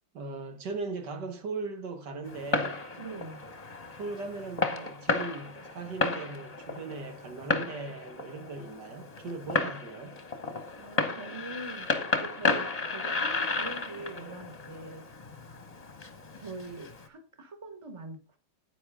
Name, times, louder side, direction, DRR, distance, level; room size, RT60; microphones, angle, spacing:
voice 1, 0.1-2.8 3.9-10.2, right 3 dB, 75° right, 2.0 m, -38 dB
Fireworks, 2.2-17.1, left 3 dB, 25° left, 1.2 m, -33 dB
voice 2, 3.0-3.5 10.8-15.1 16.4-18.4, right 3 dB, 20° right, 1.4 m, -43 dB
10.0 x 9.2 x 3.6 m
omnidirectional pair, 1.9 m